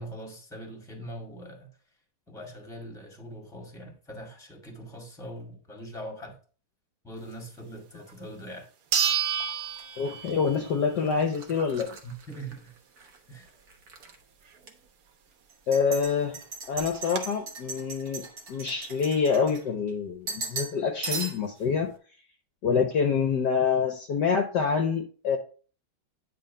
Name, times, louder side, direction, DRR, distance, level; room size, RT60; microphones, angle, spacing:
voice 1, 0.0-1.7 2.3-6.4 7.0-8.7 12.0-12.7 13.3-13.5, right 1 dB, ahead, 1.7 m, -42 dB
sound 1, 8.1-8.2 8.9-10.7 11.1-11.2 15.8-15.9 16.1-16.2 16.7-17.2, right 8 dB, 80° right, 1.9 m, -29 dB
sound 2, 9.2-13.2 13.5-14.1 14.6-14.7 15.5-19.9 20.3-20.8 21.0-21.6, right 4 dB, 50° right, 1.5 m, -39 dB
voice 2, 10.0-12.0 15.7-16.4 16.7-21.9 22.6-25.4, left 6 dB, 60° left, 1.3 m, -26 dB
9.5 x 3.6 x 5.3 m
omnidirectional pair, 2.3 m